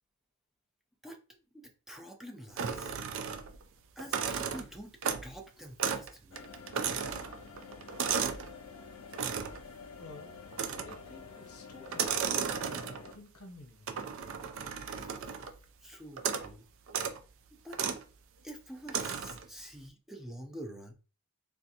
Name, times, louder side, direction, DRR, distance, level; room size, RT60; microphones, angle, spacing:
voice 1, 1.0-3.0 4.0-6.4 14.9-15.1 15.8-16.7 17.5-17.8 18.4-20.9, equal, ahead, 0.4 m, -47 dB
sound 1, 2.6-3.6 4.0-5.4 5.8-6.1 6.4-8.5 9.1-9.6 10.5-11.1 11.9-13.2 13.9-15.6 16.2-16.5 16.9-17.2 17.7-18.0 18.9-19.5, right 7 dB, 60° right, 0.4 m, -34 dB
sound 2, 6.3-13.1, left 5 dB, 70° left, 0.4 m, -49 dB
voice 2, 10.0-10.3 10.8-12.9 13.1-14.1, left 3 dB, 90° left, 0.9 m, -52 dB
3.4 x 2.5 x 2.7 m
head